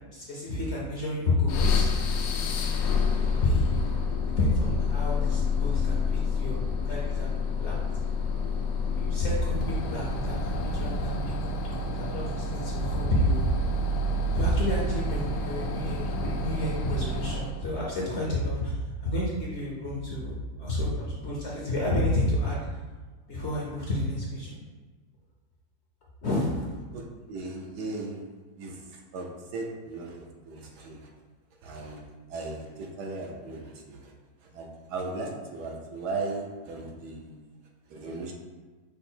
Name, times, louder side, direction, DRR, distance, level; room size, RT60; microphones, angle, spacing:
voice 1, 0.1-1.9 3.2-4.0 4.4-7.8 8.8-13.4 14.3-18.7 19.0-22.6 23.3-24.6 26.2-26.8, left 1 dB, 55° left, -4 dB, 0.8 m, -30 dB
sound 1, 1.5-17.6, left 3 dB, 80° left, 1.1 m, -28 dB
voice 2, 26.9-28.2 28.6-31.1 31.6-32.0 32.3-34.1 34.5-37.4 37.9-38.3, right 3 dB, 80° right, 1 dB, 1.2 m, -37 dB
5.4 x 2.0 x 4.3 m, 1.3 s
omnidirectional pair, 1.8 m